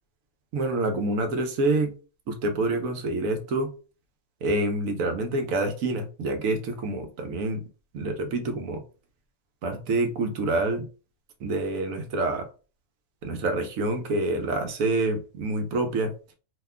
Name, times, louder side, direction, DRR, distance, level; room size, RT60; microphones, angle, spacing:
voice 1, 0.5-1.9 2.3-3.7 4.4-7.6 7.9-8.8 9.6-10.9 11.4-12.5 13.2-16.1, right 2 dB, 80° right, 6 dB, 1.1 m, -27 dB
2.7 x 2.2 x 3.5 m, 0.36 s
omnidirectional pair, 1.4 m